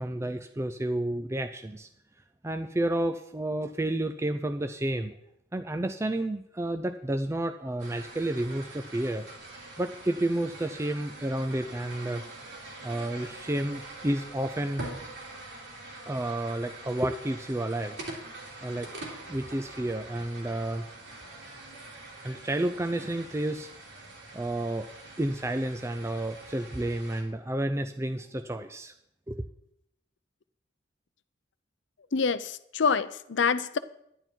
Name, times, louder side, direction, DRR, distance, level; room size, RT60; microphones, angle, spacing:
voice 1, 0.0-1.9 2.4-5.1 5.5-9.3 9.8-12.2 12.8-14.9 16.1-18.0 18.6-18.9 19.3-20.8 22.2-23.7 24.3-24.9 25.2-28.9 29.3-29.5, right 1 dB, 15° right, 0.4 m, -31 dB
sound 1, 7.8-27.2, right 2 dB, 75° right, 3.0 m, -44 dB
voice 2, 32.1-33.8, left 5 dB, 75° left, 0.6 m, -26 dB
11.0 x 10.5 x 4.5 m
head